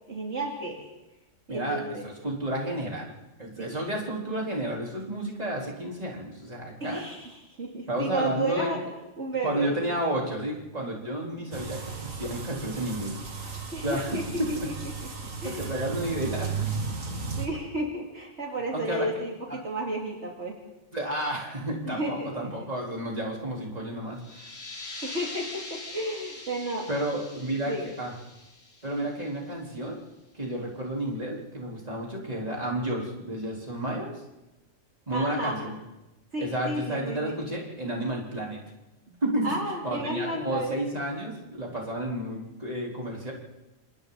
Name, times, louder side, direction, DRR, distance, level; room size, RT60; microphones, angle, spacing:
voice 1, 0.1-0.8 1.5-2.1 3.6-3.8 6.8-8.8 9.2-10.0 11.4-11.5 13.7-14.8 15.4-15.7 17.4-20.6 21.8-22.5 25.0-26.9 27.6-27.9 28.9-29.1 35.1-35.6 36.3-37.4 39.1-39.2 39.4-40.7, right 1 dB, 60° right, -1 dB, 3.1 m, -33 dB
voice 2, 1.5-3.1 3.4-7.0 7.9-8.7 9.4-13.4 13.8-14.7 15.4-16.8 18.7-19.1 19.5-19.6 20.9-24.4 26.9-27.7 28.0-28.1 28.8-30.0 30.3-34.1 35.1-35.8 36.4-38.6 39.2-39.5 39.8-43.3, right 1 dB, 30° right, -3 dB, 4.2 m, -31 dB
sound 1, 11.5-17.5, right 5 dB, 85° right, 2.4 m, -35 dB
sound 2, 24.1-29.5, left 2 dB, 80° left, 3.9 m, -43 dB
28.5 x 27.5 x 4.1 m, 0.97 s
omnidirectional pair, 1.3 m